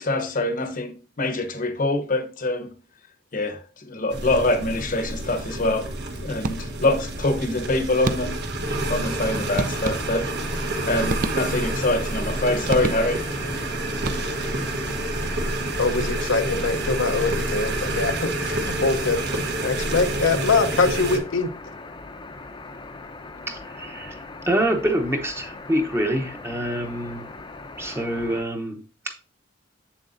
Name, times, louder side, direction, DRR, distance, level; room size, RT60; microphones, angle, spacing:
voice 1, 0.0-2.7 3.3-5.9 6.2-8.4 8.9-13.3, left 2 dB, 45° left, 0.9 m, -25 dB
sound 1, 4.1-21.2, right 2 dB, 60° right, 1.2 m, -28 dB
sound 2, 6.4-7.0 8.0-8.6 9.6-10.4 11.1-11.9 12.7-13.4 13.9-14.6, right 3 dB, 45° right, 0.5 m, -30 dB
sound 3, 8.6-28.4, left 3 dB, 25° left, 0.7 m, -40 dB
voice 2, 15.8-21.5, left 4 dB, 80° left, 0.8 m, -23 dB
voice 3, 23.5-27.3 27.8-29.1, right 1 dB, 15° right, 0.9 m, -26 dB
7.8 x 7.2 x 2.6 m
head